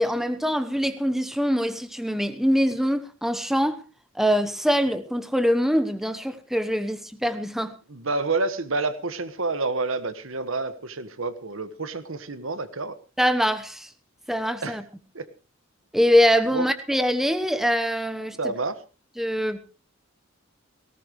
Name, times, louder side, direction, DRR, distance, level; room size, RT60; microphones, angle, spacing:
voice 1, 0.0-3.8 4.1-7.7 13.2-13.9 14.3-14.8 15.9-18.4 19.2-19.6, equal, ahead, 1.0 m, -23 dB
voice 2, 7.9-13.0 14.6-14.8 15.1-15.3 16.5-16.7 18.4-18.8, right 3 dB, 80° right, 1.5 m, -28 dB
19.0 x 17.5 x 3.2 m
head